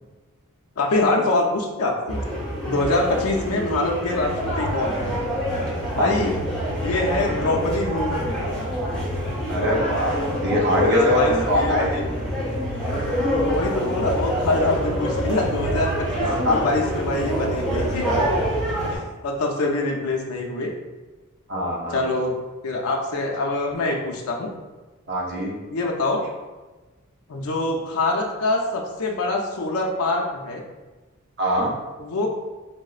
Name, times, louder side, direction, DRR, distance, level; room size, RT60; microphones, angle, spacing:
voice 1, 0.8-2.2 2.6-5.1 6.0-6.4 6.8-8.2 10.7-12.0 13.5-18.1 18.9-20.7 21.9-22.4 22.6-24.5 25.7-26.2 27.3-30.6 32.0-32.3, left 2 dB, 75° left, 0 dB, 0.5 m, -24 dB
sound 1, 2.1-19.0, equal, ahead, 0.9 m, -26 dB
voice 2, 6.0-6.3 9.5-10.1 10.4-12.0 16.2-16.6 21.5-22.0 25.1-25.5 31.4-31.7, equal, 50° right, -2 dB, 0.7 m, -22 dB
4.7 x 2.0 x 2.4 m, 1.2 s
head